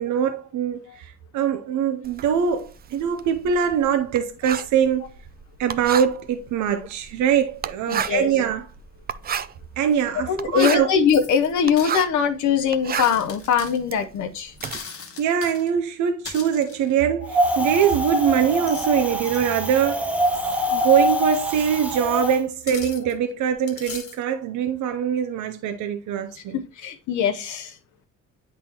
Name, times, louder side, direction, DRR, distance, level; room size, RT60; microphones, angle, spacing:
voice 1, 0.0-5.1 5.6-8.7 9.8-10.9 15.2-20.1 20.7-26.6, right 8 dB, 75° right, 0.7 m, -23 dB
Writing, 2.0-12.2 12.6-14.8, right 8 dB, 30° right, 0.4 m, -32 dB
sound 1, 7.4-7.5 8.2-8.3 9.9-10.0 11.1-12.0 12.9-13.8 14.6-15.7 16.2-16.9 18.3-18.9 19.2-19.6 21.3-21.4 22.6-23.1 23.7-24.2, left 5 dB, 50° left, 1.3 m, -39 dB
voice 2, 7.9-8.3 10.1-14.5 26.4-27.8, left 7 dB, 70° left, 0.7 m, -22 dB
Wind, 17.3-22.4, equal, 5° right, 0.8 m, -24 dB
8.6 x 3.8 x 2.8 m
cardioid pair, 90°, 30 cm